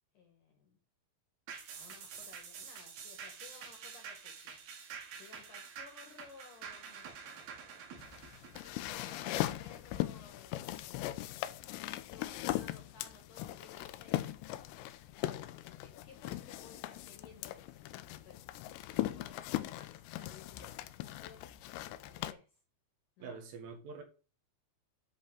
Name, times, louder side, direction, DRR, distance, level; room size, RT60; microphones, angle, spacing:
voice 1, 0.1-0.8 1.8-4.6 5.1-8.0 8.7-11.0 11.9-14.5 15.2-18.4 18.9-21.5 22.0-22.6 23.2-23.4, left 5 dB, 60° left, 2.2 m, -58 dB
sound 1, 1.5-10.2 10.6-10.7, right 6 dB, 60° right, 3.4 m, -48 dB
sound 2, 8.0-22.3, left 15 dB, 85° left, 2.6 m, -39 dB
voice 2, 23.2-24.0, right 4 dB, 85° right, 4.6 m, -45 dB
10.5 x 4.3 x 7.6 m
omnidirectional pair, 5.6 m